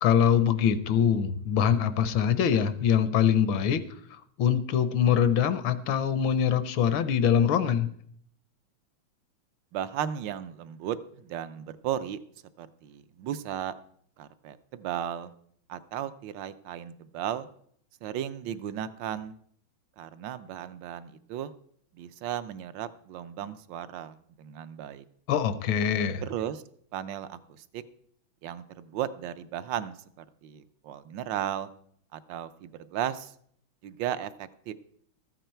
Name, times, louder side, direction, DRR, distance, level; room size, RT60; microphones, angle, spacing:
voice 1, 0.0-3.8 4.4-7.9 25.3-26.2, left 8 dB, 75° left, 13 dB, 1.5 m, -23 dB
voice 2, 9.7-12.2 12.6-13.7 14.2-15.3 15.7-17.5 18.0-19.4 20.0-21.5 21.9-25.0 26.2-26.6 26.9-27.8 28.4-31.7 32.1-33.3 33.8-34.7, right 10 dB, 70° right, 13 dB, 1.2 m, -35 dB
14.0 x 9.1 x 4.4 m, 0.64 s
omnidirectional pair, 2.2 m